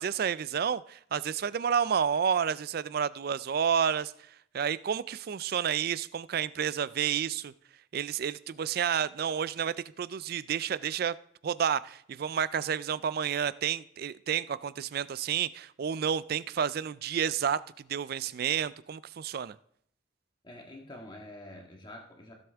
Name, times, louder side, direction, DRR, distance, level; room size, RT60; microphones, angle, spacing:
voice 1, 0.0-4.1 4.5-7.5 7.9-11.1 11.4-17.6 17.9-19.6, right 8 dB, 50° right, 18 dB, 0.3 m, -30 dB
voice 2, 20.4-22.3, left 1 dB, 25° left, 1 dB, 1.8 m, -46 dB
16.0 x 7.8 x 3.5 m, 0.69 s
head